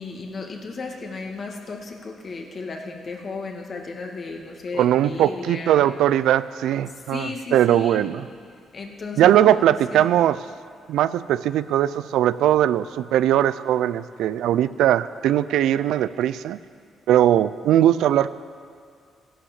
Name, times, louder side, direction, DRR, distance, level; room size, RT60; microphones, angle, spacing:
voice 1, 0.0-5.8 7.1-8.1 8.7-10.1, left 3 dB, 45° left, 2 dB, 2.1 m, -34 dB
voice 2, 4.8-8.2 9.2-10.4 10.9-16.6 17.1-18.3, right 11 dB, 85° right, 15 dB, 0.4 m, -20 dB
15.0 x 11.5 x 7.4 m, 2.2 s
cardioid pair, 90°, 0 cm